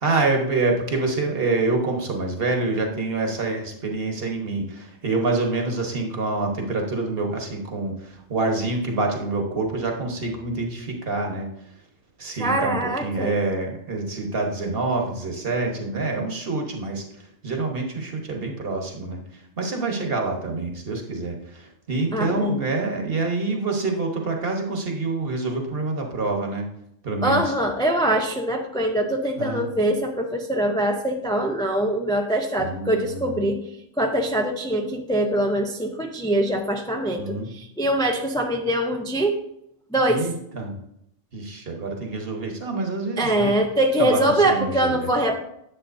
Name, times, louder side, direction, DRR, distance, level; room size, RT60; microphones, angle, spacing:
voice 1, 0.0-11.5 12.2-26.7 27.0-27.5 29.4-29.7 32.6-33.4 37.2-37.5 40.1-40.7 41.3-43.5 44.0-45.1, right 3 dB, 50° right, 2 dB, 1.3 m, -26 dB
voice 2, 12.3-13.3 22.1-22.6 27.2-33.6 34.0-39.4 39.9-40.3 43.2-45.4, right 1 dB, 5° left, 3 dB, 0.3 m, -23 dB
10.0 x 7.3 x 2.6 m, 0.77 s
omnidirectional pair, 1.3 m